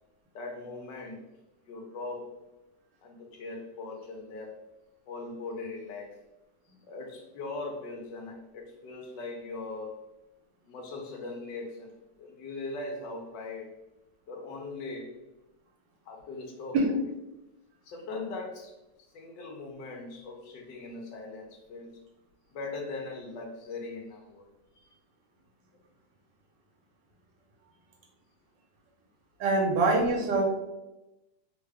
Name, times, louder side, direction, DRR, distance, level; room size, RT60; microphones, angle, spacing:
voice 1, 0.3-1.3 1.6-2.3 3.0-4.5 5.1-6.2 6.9-10.0 10.6-13.7 14.3-15.2 16.1-17.0 17.8-22.0 22.5-24.5, left 3 dB, 80° left, 2 dB, 1.3 m, -40 dB
voice 2, 29.4-30.5, right 3 dB, 85° right, 0 dB, 1.5 m, -24 dB
3.4 x 2.3 x 3.3 m, 0.98 s
omnidirectional pair, 1.9 m